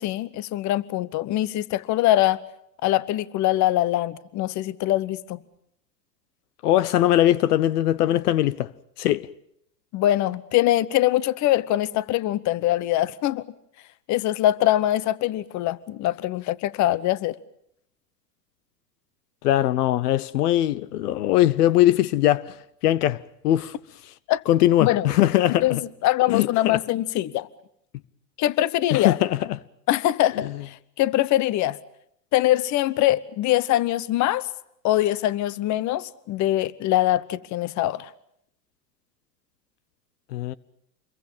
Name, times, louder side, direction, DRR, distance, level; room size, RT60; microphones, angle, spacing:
voice 1, 0.0-2.4 2.8-5.4 9.9-13.4 14.1-17.4 24.3-24.4 24.8-25.1 25.6-27.5 28.4-29.2 29.9-31.8 32.3-34.5 34.8-38.1, left 14 dB, 35° left, 1.1 m, -23 dB
voice 2, 6.6-8.7 9.0-9.3 19.4-22.6 22.8-23.7 24.5-25.8 26.3-26.8 28.9-29.6 30.4-30.5 40.3-40.5, left 13 dB, 65° left, 1.0 m, -21 dB
27.5 x 22.5 x 7.3 m
hypercardioid pair, 105°, 49 cm